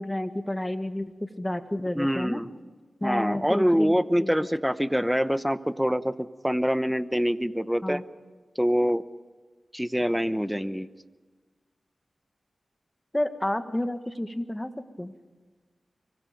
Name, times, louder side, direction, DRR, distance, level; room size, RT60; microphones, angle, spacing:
voice 1, 0.0-2.4 3.0-4.3 7.8-8.0 13.1-14.7 15.0-15.1, left 1 dB, 15° left, 8 dB, 1.8 m, -30 dB
voice 2, 1.9-2.5 3.0-8.0 8.6-9.0 9.7-10.9, equal, 5° right, 13 dB, 1.0 m, -25 dB
25.5 x 24.0 x 5.3 m, 1.4 s
cardioid pair, 45°, 0 cm